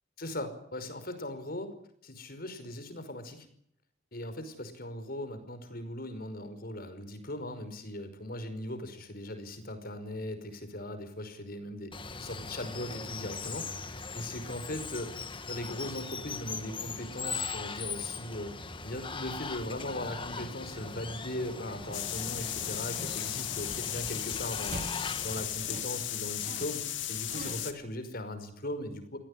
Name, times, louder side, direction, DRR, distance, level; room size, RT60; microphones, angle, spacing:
voice 1, 0.2-1.7 2.0-3.5 4.1-11.9 12.2-15.2 15.5-18.5 18.8-24.8 25.2-26.8 27.1-29.2, left 1 dB, 50° left, 10 dB, 5.4 m, -39 dB
Water, 11.9-25.5, left 4 dB, 25° left, 1.9 m, -40 dB
sound 1, 20.0-21.2 21.8-24.2 24.7-27.9, right 1 dB, 40° right, 1.5 m, -46 dB
sound 2, 21.9-27.7, left 12 dB, 75° left, 2.7 m, -35 dB
24.5 x 18.0 x 10.0 m, 0.69 s
head